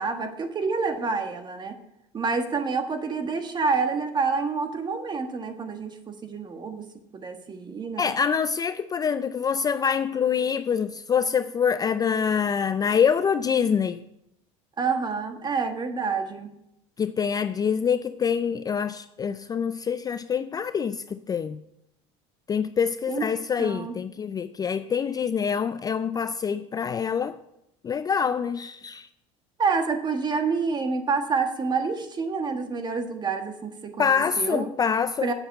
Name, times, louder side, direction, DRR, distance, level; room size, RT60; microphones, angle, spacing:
voice 1, 0.0-1.7 2.1-6.8 7.1-8.1 14.8-16.5 23.1-23.3 23.6-24.0 29.6-34.7 35.2-35.3, right 4 dB, 30° right, 1.6 m, -28 dB
voice 2, 8.0-14.0 17.0-21.6 22.5-27.4 27.8-29.1 34.0-35.3, left 7 dB, 25° left, 0.4 m, -25 dB
8.0 x 6.8 x 8.0 m
supercardioid pair, 100°, 15 cm